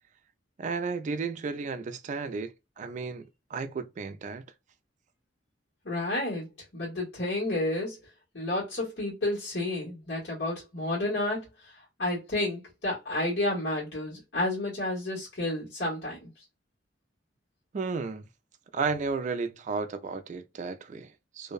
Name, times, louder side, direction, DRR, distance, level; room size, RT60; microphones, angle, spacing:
voice 1, 0.6-4.4 17.7-18.3 18.7-21.5, right 4 dB, 40° right, 0.3 m, -33 dB
voice 2, 5.8-6.5 6.7-8.0 8.3-11.7 12.0-16.3, left 1 dB, 80° left, 1.4 m, -31 dB
2.6 x 2.1 x 2.3 m
head